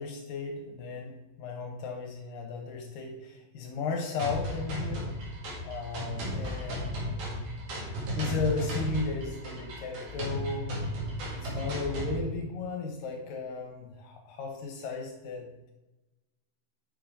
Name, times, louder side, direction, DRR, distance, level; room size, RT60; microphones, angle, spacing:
voice 1, 0.0-5.0 5.6-7.6 8.2-10.7 11.3-15.7, left 4 dB, 80° left, 1 dB, 2.8 m, -35 dB
sound 1, 4.2-12.2, equal, 65° right, 3.5 m, -34 dB
7.8 x 5.8 x 5.0 m, 1.1 s
omnidirectional pair, 4.0 m